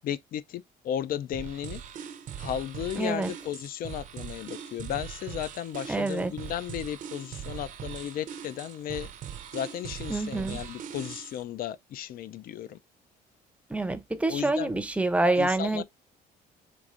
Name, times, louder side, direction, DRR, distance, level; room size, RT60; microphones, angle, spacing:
voice 1, 0.0-1.8 2.4-9.1 9.5-12.8 14.3-14.7 15.4-15.8, left 10 dB, 60° left, 0.5 m, -34 dB
sound 1, 1.3-11.4, right 8 dB, 50° right, 0.6 m, -41 dB
voice 2, 3.0-3.3 5.9-6.3 10.1-10.6 13.7-15.8, right 2 dB, 5° right, 0.6 m, -27 dB
4.6 x 2.6 x 2.5 m
cardioid pair, 110°, 17 cm